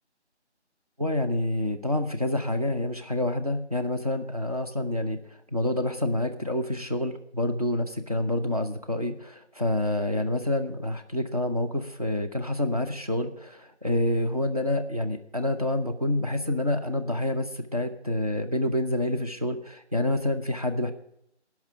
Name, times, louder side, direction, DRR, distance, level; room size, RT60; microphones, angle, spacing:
voice 1, 1.0-5.2 5.5-20.9, left 1 dB, 35° right, 4 dB, 0.7 m, -28 dB
12.0 x 6.0 x 8.1 m, 0.75 s
figure-of-eight pair, 180°, 35 cm